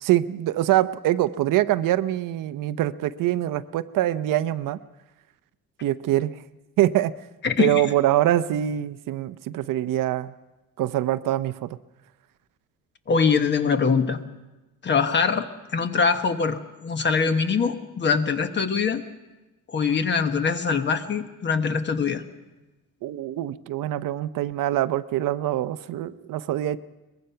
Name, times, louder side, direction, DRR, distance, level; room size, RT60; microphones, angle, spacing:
voice 1, 0.0-4.8 5.8-6.3 6.8-7.1 7.6-10.3 10.8-11.8 23.0-26.8, right 13 dB, 75° right, 13 dB, 0.7 m, -24 dB
voice 2, 7.4-7.9 13.1-14.2 14.8-15.5 15.7-19.0 19.7-22.2, left 5 dB, 35° left, 9 dB, 1.1 m, -23 dB
22.5 x 21.0 x 5.7 m, 1.1 s
cardioid pair, 170°, 32 cm